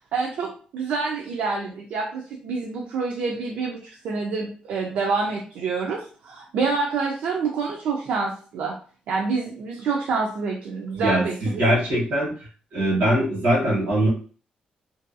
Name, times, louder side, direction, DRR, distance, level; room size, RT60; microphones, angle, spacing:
voice 1, 0.1-8.7 9.1-11.6, right 4 dB, 75° right, -1 dB, 0.4 m, -27 dB
voice 2, 11.0-12.3 12.7-14.1, right 1 dB, 90° right, -3 dB, 1.3 m, -22 dB
2.6 x 2.3 x 2.5 m, 0.41 s
wide cardioid pair, 180°, 3 cm